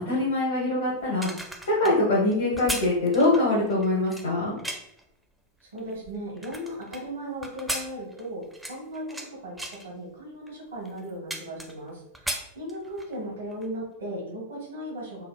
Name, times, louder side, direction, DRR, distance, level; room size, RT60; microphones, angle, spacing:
voice 1, 0.0-1.3 1.7-4.6, left 2 dB, 60° left, -5 dB, 0.8 m, -23 dB
sound 1, 1.0-5.0 5.6-7.0 7.4-9.3 9.6-9.9 10.5-10.6 10.9-11.9 12.1-13.1 13.5-13.7, right 1 dB, 5° right, 0.4 m, -36 dB
voice 2, 5.6-15.3, equal, 70° right, -2 dB, 1.0 m, -37 dB
3.4 x 2.0 x 2.2 m, 0.76 s
figure-of-eight pair, 90°, 0 cm